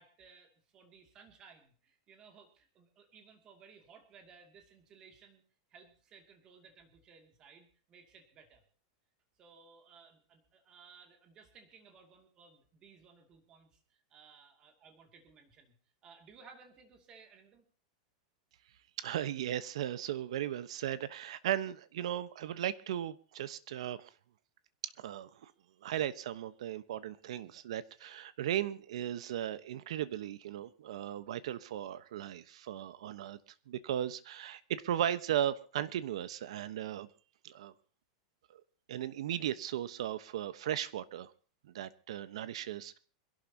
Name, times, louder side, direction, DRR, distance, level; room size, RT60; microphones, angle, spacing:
voice 1, 0.0-5.4 5.7-8.6 9.4-15.8 16.0-17.7, right 5 dB, 25° right, 5 dB, 2.5 m, -59 dB
voice 2, 19.0-24.1 24.8-25.5 25.8-33.4 33.7-37.1 37.4-37.7 38.5-38.6 38.9-41.3 41.7-43.0, right 11 dB, 75° right, 14 dB, 1.1 m, -36 dB
26.5 x 11.5 x 2.9 m, 0.41 s
supercardioid pair, 170°, 3 cm